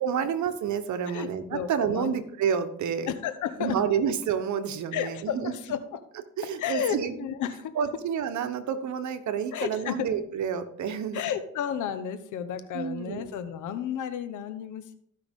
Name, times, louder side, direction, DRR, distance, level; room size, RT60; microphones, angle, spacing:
voice 1, 0.0-3.1 3.6-5.5 6.4-7.1 7.7-11.2 12.7-13.4, right 7 dB, 70° right, 9 dB, 1.1 m, -29 dB
voice 2, 1.1-2.1 3.1-3.8 4.9-5.8 6.6-7.7 9.5-10.1 11.1-14.9, left 9 dB, 80° left, 10 dB, 1.0 m, -32 dB
15.0 x 5.7 x 3.7 m, 0.66 s
cardioid pair, 90°, 30 cm